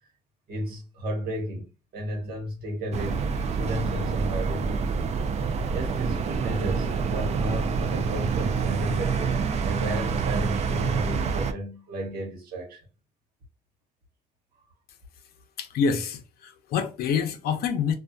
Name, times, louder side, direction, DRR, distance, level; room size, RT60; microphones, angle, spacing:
voice 1, 0.5-1.7 1.9-5.0 5.7-12.8, equal, 65° right, 1.1 m, -33 dB
sound 1, 2.9-11.5, right 5 dB, 40° right, 0.4 m, -27 dB
voice 2, 15.6-17.9, left 6 dB, 65° left, 0.6 m, -27 dB
2.6 x 2.3 x 2.2 m
cardioid pair, 110°, 17 cm